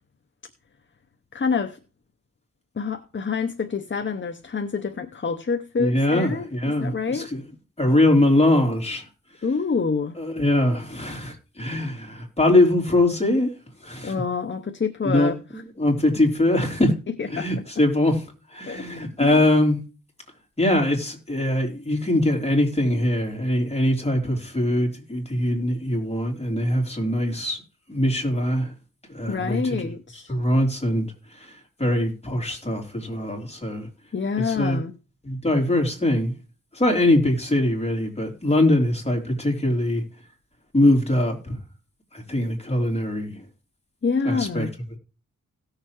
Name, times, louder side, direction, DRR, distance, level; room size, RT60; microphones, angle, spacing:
voice 1, 1.3-1.8 2.8-7.3 9.4-10.2 14.0-15.4 17.2-17.5 18.6-19.3 29.3-30.3 34.1-34.9 44.0-44.7, left 5 dB, 35° left, 0.7 m, -27 dB
voice 2, 5.8-7.4 7.8-9.0 10.2-13.5 13.8-14.2 15.0-15.3 15.8-16.9 17.3-18.2 18.5-19.8 20.6-27.6 27.9-28.7 29.1-29.9 30.3-31.1 31.4-33.9 34.4-34.8 35.2-36.3 36.7-40.0 40.7-41.6 42.1-43.4 44.2-44.7, left 1 dB, 20° left, 3.4 m, -22 dB
17.5 x 6.7 x 3.0 m
wide cardioid pair, 110°, 32 cm